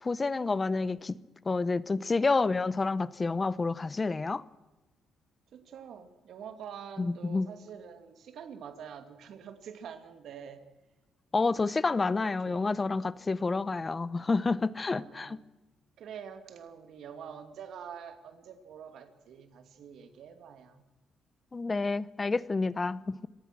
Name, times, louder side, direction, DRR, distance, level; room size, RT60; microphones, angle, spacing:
voice 1, 0.0-1.2 1.4-4.4 7.0-7.5 11.3-15.4 21.5-23.3, left 3 dB, 25° left, 0.8 m, -29 dB
voice 2, 5.5-10.6 11.9-12.8 14.9-15.4 16.0-20.8, right 7 dB, 70° right, 2.6 m, -46 dB
25.5 x 19.0 x 6.2 m
cardioid pair, 90°, 0 cm